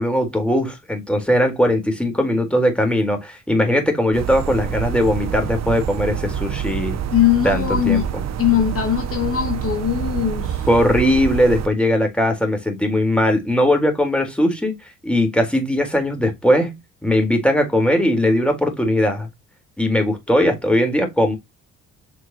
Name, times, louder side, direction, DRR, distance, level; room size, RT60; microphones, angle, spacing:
voice 1, 0.0-7.0 7.4-8.0 10.7-14.7 15.0-19.3 19.8-21.4, left 1 dB, 5° left, 4.1 m, -19 dB
sound 1, 4.1-11.7, right 9 dB, 60° right, 1.1 m, -27 dB
voice 2, 7.1-8.1 8.4-10.7, left 10 dB, 50° left, 2.6 m, -20 dB
7.5 x 6.4 x 3.0 m
cardioid pair, 90°, 30 cm